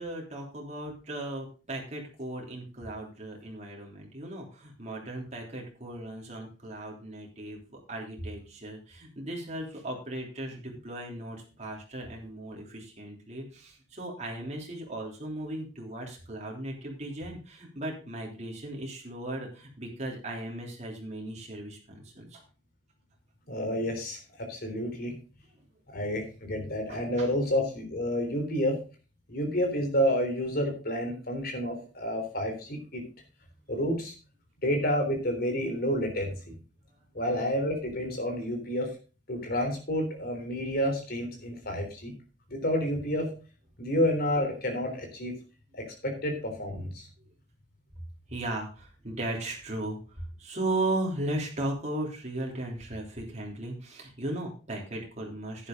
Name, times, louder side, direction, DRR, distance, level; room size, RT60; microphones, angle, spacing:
voice 1, 0.0-22.4 26.9-27.3 47.2-47.3 48.3-55.7, right 1 dB, 40° right, 0 dB, 3.3 m, -36 dB
voice 2, 23.5-25.1 25.9-28.8 29.3-33.0 33.7-34.1 34.6-36.3 37.1-38.9 39.3-42.1 42.5-43.3 43.8-45.3 45.7-47.1, equal, 55° left, 3 dB, 3.7 m, -29 dB
11.0 x 9.8 x 3.8 m, 0.36 s
head